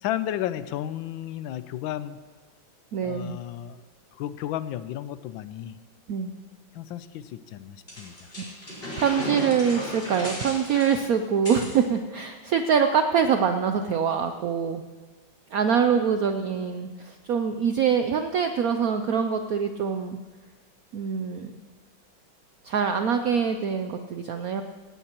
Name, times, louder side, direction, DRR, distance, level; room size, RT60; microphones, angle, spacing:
voice 1, 0.0-2.2 3.0-3.8 4.2-5.8 6.7-8.3, left 12 dB, 80° left, 14 dB, 1.3 m, -33 dB
voice 2, 2.9-3.4 6.1-6.3 9.0-14.8 15.5-20.2 20.9-21.5 22.6-24.6, right 7 dB, 75° right, 7 dB, 0.8 m, -24 dB
sound 1, 7.9-11.8, equal, 30° left, 5.2 m, -35 dB
17.5 x 16.5 x 3.0 m, 1.3 s
omnidirectional pair, 2.2 m